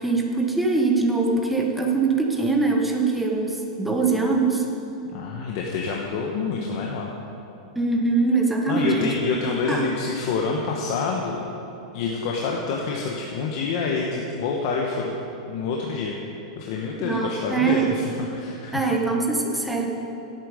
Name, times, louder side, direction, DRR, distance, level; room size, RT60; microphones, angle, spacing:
voice 1, 0.0-4.7 7.7-9.1 9.6-9.9 17.0-17.9 18.7-19.9, right 3 dB, 5° right, 0 dB, 1.2 m, -22 dB
voice 2, 5.1-7.1 8.7-11.4 11.9-15.1 15.5-16.2 16.6-18.9, left 4 dB, 45° left, -1 dB, 1.2 m, -27 dB
17.0 x 8.9 x 5.1 m, 2.9 s
supercardioid pair, 160°, 4 cm